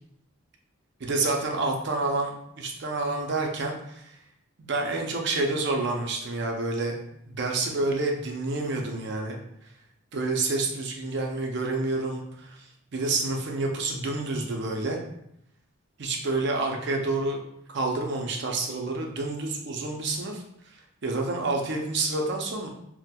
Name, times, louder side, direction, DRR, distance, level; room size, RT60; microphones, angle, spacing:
voice 1, 1.0-4.2 4.6-7.0 7.3-9.4 10.1-15.0 16.0-17.4 17.7-20.4 21.0-22.7, right 2 dB, 50° right, 1 dB, 0.5 m, -28 dB
4.2 x 2.1 x 2.2 m, 0.79 s
head